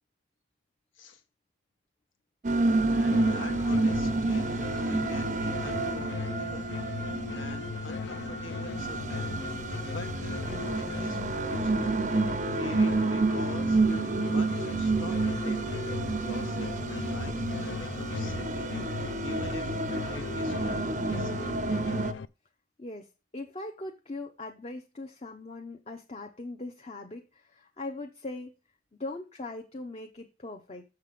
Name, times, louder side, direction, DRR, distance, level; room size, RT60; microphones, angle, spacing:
sound 1, 2.4-22.1, right 3 dB, 40° right, 0.5 m, -29 dB
voice 1, 2.8-6.7 7.3-9.4 9.9-10.5 10.7-12.1 12.5-13.8 14.2-18.8 19.2-19.8 20.1-20.8 21.0-21.5, left 2 dB, 85° left, 8 dB, 1.5 m, -45 dB
sound 2, 3.1-22.3, left 5 dB, 65° left, 0.4 m, -37 dB
voice 2, 23.3-28.5 29.0-30.8, left 2 dB, 30° left, 3 dB, 0.7 m, -40 dB
6.8 x 6.1 x 5.1 m, 0.31 s
head